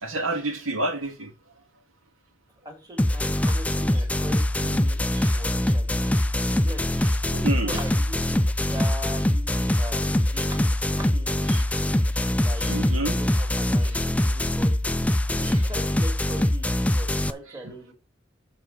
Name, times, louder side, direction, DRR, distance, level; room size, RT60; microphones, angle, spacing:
voice 1, 0.0-1.3 5.1-5.4 6.2-6.3 7.4-7.8 10.4-10.5 11.5-11.6 12.6-13.2 15.4-15.6, right 2 dB, 85° right, 2.3 m, -29 dB
voice 2, 2.6-5.0 5.3-6.3 6.6-6.8 7.3-11.7 12.4-14.7 15.3-17.9, right 1 dB, 20° right, 2.4 m, -41 dB
sound 1, 3.0-17.3, left 1 dB, 5° left, 0.3 m, -23 dB
7.5 x 4.9 x 6.4 m
head